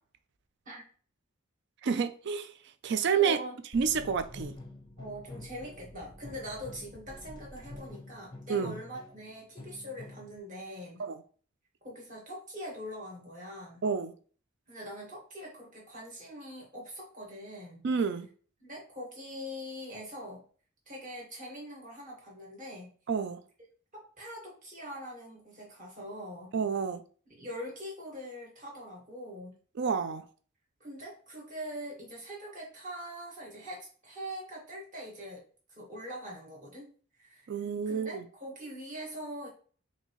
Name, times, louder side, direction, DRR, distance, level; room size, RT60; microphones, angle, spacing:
voice 1, 1.8-2.5 2.8-3.4 3.7-4.5 8.5-8.8 11.0-11.2 13.8-14.1 17.8-18.3 23.1-23.4 26.5-27.0 29.8-30.3 37.5-38.2, right 6 dB, 55° right, 0.4 m, -29 dB
voice 2, 3.2-3.5 5.0-11.0 11.8-13.8 14.7-17.8 18.6-20.4 20.9-22.9 23.9-26.5 27.3-29.6 30.8-36.9 37.2-39.5, equal, 40° right, 1.6 m, -43 dB
sound 1, 3.7-10.4, left 2 dB, 20° left, 0.6 m, -47 dB
4.4 x 2.8 x 3.0 m
head